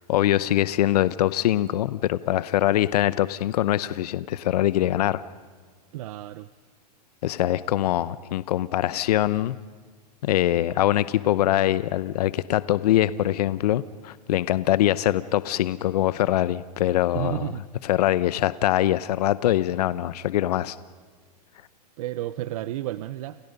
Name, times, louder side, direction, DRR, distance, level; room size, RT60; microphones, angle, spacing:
voice 1, 0.0-5.2 7.2-9.6 10.2-17.5 17.8-20.8, left 13 dB, 70° left, 16 dB, 0.8 m, -23 dB
voice 2, 5.9-6.5 17.1-17.6 22.0-23.4, right 15 dB, 55° right, 14 dB, 0.8 m, -31 dB
29.5 x 29.5 x 5.4 m, 1.5 s
hypercardioid pair, 140°, 21 cm